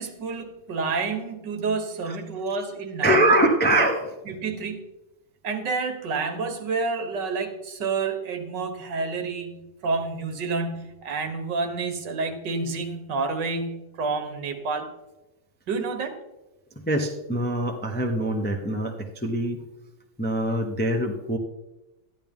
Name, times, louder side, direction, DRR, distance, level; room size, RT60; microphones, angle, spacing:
voice 1, 0.0-3.2 4.3-4.9 5.4-14.9 15.7-16.2, right 4 dB, 60° right, 6 dB, 1.8 m, -29 dB
voice 2, 3.0-4.1 16.7-19.6 20.2-21.4, right 1 dB, 15° left, 2 dB, 0.3 m, -23 dB
13.0 x 10.5 x 3.6 m, 1.0 s
omnidirectional pair, 2.2 m